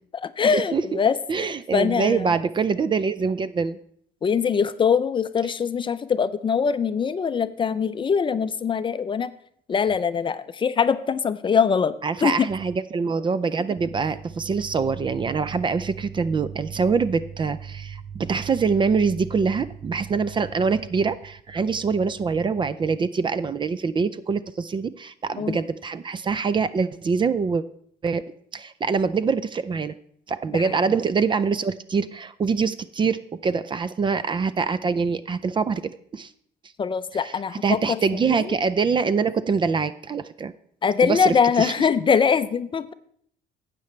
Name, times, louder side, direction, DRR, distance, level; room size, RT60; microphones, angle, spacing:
voice 1, 0.2-2.3 4.2-9.3 9.7-11.9 12.2-12.5 25.4-25.6 30.5-30.7 36.8-38.0 38.2-38.5 40.8-42.9, left 6 dB, 30° left, 13 dB, 0.5 m, -23 dB
voice 2, 1.3-3.8 12.0-27.6 28.0-28.2 28.5-29.9 30.3-35.8 36.1-36.3 37.1-40.5 41.0-41.9, right 5 dB, 30° right, 15 dB, 0.4 m, -24 dB
12.5 x 8.4 x 3.2 m, 0.66 s
cardioid pair, 110°, 17 cm